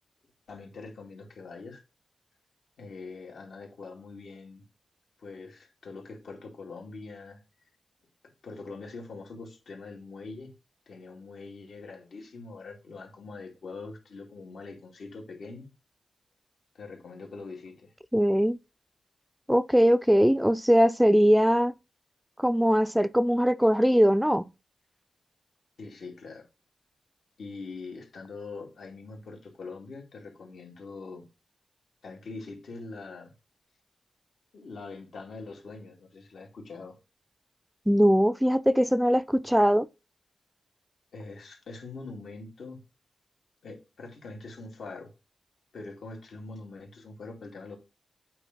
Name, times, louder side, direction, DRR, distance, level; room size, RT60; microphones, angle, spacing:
voice 1, 0.5-1.8 2.8-4.6 5.2-7.4 8.4-10.5 10.9-15.7 16.7-17.9 25.8-26.5 27.4-31.3 32.0-33.3 34.5-37.0 41.1-42.8 43.6-45.1 45.7-47.8, left 3 dB, 85° left, 2.2 m, -43 dB
voice 2, 18.1-18.6 19.5-21.7 22.4-24.5 37.9-39.9, equal, 5° right, 0.4 m, -21 dB
8.5 x 3.1 x 5.2 m
cardioid pair, 70°, 0 cm